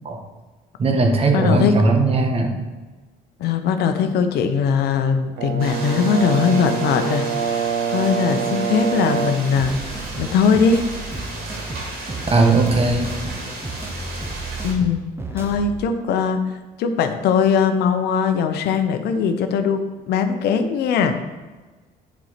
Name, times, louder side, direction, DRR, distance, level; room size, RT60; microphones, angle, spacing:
voice 1, 0.8-2.6 12.3-13.1, right 3 dB, 35° right, 4 dB, 1.5 m, -18 dB
voice 2, 1.3-1.8 3.4-10.8 14.6-19.8 20.1-21.1, left 6 dB, 75° left, 8 dB, 0.9 m, -20 dB
Brass instrument, 5.4-9.5, right 7 dB, 85° right, 0.9 m, -25 dB
sound 1, 5.6-14.7, right 2 dB, 65° right, 2.8 m, -35 dB
sound 2, 9.6-15.8, right 2 dB, 15° right, 1.1 m, -33 dB
9.8 x 4.4 x 5.9 m, 1.3 s
cardioid pair, 110°, 17 cm